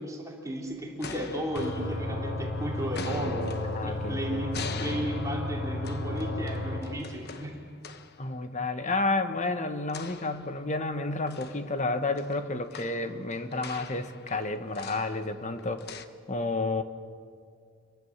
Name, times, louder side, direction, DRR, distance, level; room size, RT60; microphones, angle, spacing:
voice 1, 0.0-3.5 3.8-7.5, equal, 15° right, -1 dB, 3.3 m, -34 dB
sound 1, 0.6-2.5 2.8-8.2 9.9-10.9 11.3-16.0, left 5 dB, 50° left, 1.1 m, -43 dB
sound 2, 1.5-6.8, left 1 dB, 80° left, 5.3 m, -33 dB
voice 2, 3.7-4.4 8.2-15.9 16.3-16.8, left 2 dB, 35° left, 9 dB, 1.4 m, -31 dB
28.0 x 23.0 x 7.4 m, 2.3 s
head